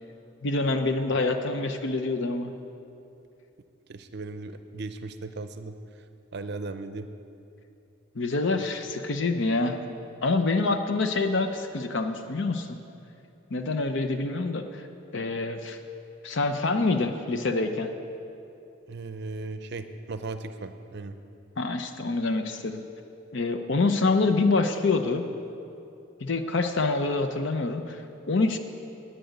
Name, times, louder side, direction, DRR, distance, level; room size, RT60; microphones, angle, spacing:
voice 1, 0.4-2.5 8.2-9.8 10.2-12.8 13.5-14.9 15.1-15.8 16.2-17.9 21.6-22.8 23.3-25.2 26.2-28.6, left 3 dB, 65° left, 7 dB, 0.6 m, -26 dB
voice 2, 3.9-6.1 6.3-7.1 18.9-21.2, right 3 dB, 55° right, 10 dB, 0.5 m, -37 dB
10.5 x 9.2 x 8.1 m, 2.8 s
head